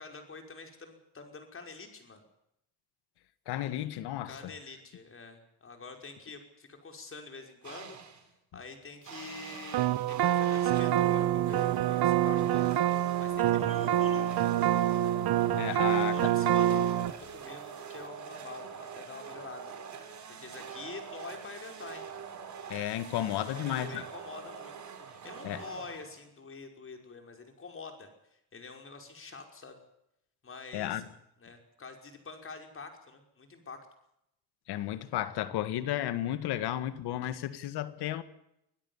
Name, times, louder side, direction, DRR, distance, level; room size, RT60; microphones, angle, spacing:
voice 1, 0.0-2.2 4.2-8.0 8.5-9.8 10.1-12.6 12.9-14.4 15.6-19.7 20.4-22.1 23.3-28.1 28.5-29.8 30.4-31.0 31.4-33.8, left 4 dB, 35° left, 5.6 m, -46 dB
voice 2, 3.5-4.5 15.6-16.3 22.7-24.0 25.4-25.6 30.7-31.0 34.7-38.2, left 12 dB, 90° left, 1.8 m, -33 dB
sound 1, 7.6-8.3 9.1-26.4, right 7 dB, 45° right, 4.3 m, -45 dB
sound 2, 9.7-17.1, right 12 dB, 75° right, 1.3 m, -26 dB
25.5 x 16.5 x 7.3 m
cardioid pair, 110°, 38 cm